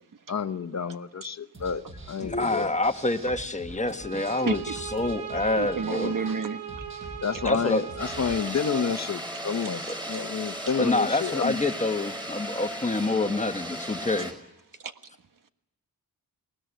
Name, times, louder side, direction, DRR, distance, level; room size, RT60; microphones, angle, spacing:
voice 1, 0.3-1.8 2.1-2.7 7.2-11.5, left 6 dB, 45° left, 11 dB, 1.0 m, -29 dB
sound 1, 1.5-8.4, right 1 dB, 35° right, 5.8 m, -44 dB
voice 2, 2.2-6.2 7.4-7.9 9.9-10.0 10.8-14.3, left 2 dB, 20° left, 8 dB, 1.2 m, -27 dB
sound 2, 4.0-9.0, right 9 dB, 75° right, 2.7 m, -39 dB
voice 3, 4.4-4.8 5.6-6.6 14.8-14.9, right 5 dB, 55° right, 8 dB, 1.5 m, -30 dB
sound 3, 8.0-14.3, equal, 10° right, 5.1 m, -36 dB
21.0 x 19.5 x 9.1 m, 0.92 s
wide cardioid pair, 115°, 37 cm